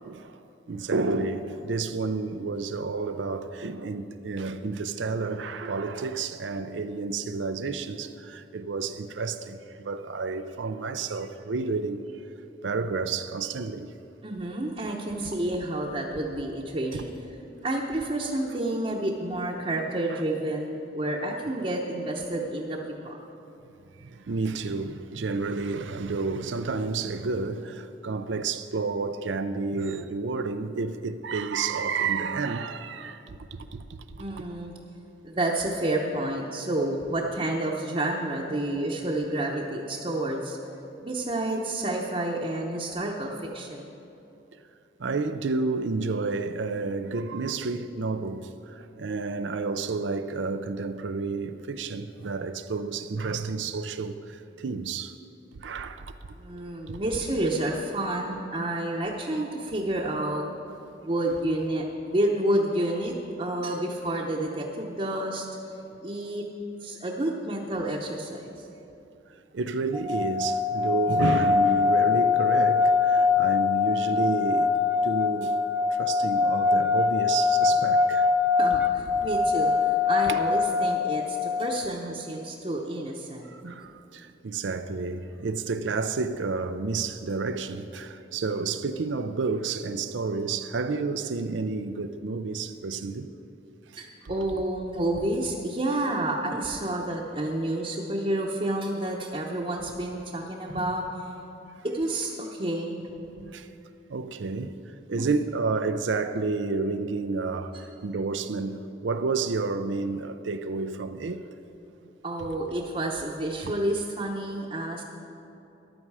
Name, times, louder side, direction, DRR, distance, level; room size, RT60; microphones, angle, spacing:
voice 1, 0.0-12.0 12.6-13.9 16.9-17.0 20.1-20.2 24.0-34.4 45.0-55.2 55.5-56.1 56.9-57.0 69.5-75.6 75.9-78.3 79.2-79.3 80.3-80.4 83.4-93.3 93.9-94.0 103.5-103.7 104.1-111.5 113.6-113.7, right 4 dB, 85° right, 0.5 m, -30 dB
voice 2, 14.2-17.1 17.6-23.2 34.2-34.7 35.2-40.6 41.0-43.9 56.3-60.4 61.0-65.5 66.0-66.4 66.8-68.7 78.6-83.5 94.0-101.3 101.8-103.5 105.2-105.3 112.2-115.0, right 1 dB, 30° right, 0.9 m, -29 dB
sound 1, 69.9-81.8, left 5 dB, 5° right, 0.6 m, -23 dB
14.5 x 11.5 x 4.8 m
head